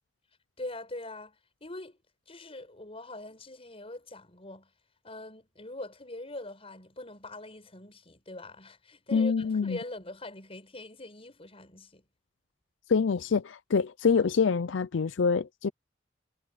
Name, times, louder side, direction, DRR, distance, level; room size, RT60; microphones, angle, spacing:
voice 1, 0.6-2.0 2.3-4.7 5.0-12.0, left 2 dB, 30° left, 5.4 m, -43 dB
voice 2, 9.1-9.8 12.9-15.7, left 5 dB, 85° left, 0.5 m, -26 dB
head